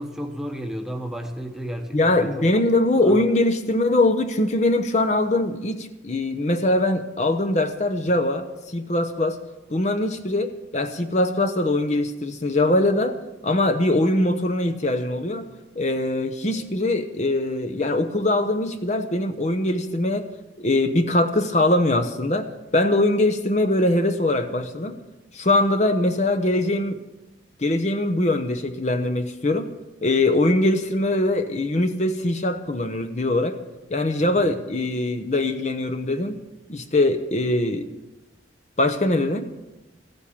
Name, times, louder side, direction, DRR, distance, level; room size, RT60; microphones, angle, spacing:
voice 1, 0.0-2.5 3.0-3.2 34.2-34.5, equal, ahead, 5 dB, 1.0 m, -33 dB
voice 2, 1.9-9.4 9.7-13.2 13.4-15.5 15.8-20.3 20.6-22.5 22.7-25.0 25.3-27.0 27.6-29.7 30.0-33.6 33.9-36.4 36.7-37.9 38.8-39.5, left 2 dB, 40° left, 8 dB, 0.8 m, -22 dB
14.5 x 7.9 x 8.7 m, 1.0 s
head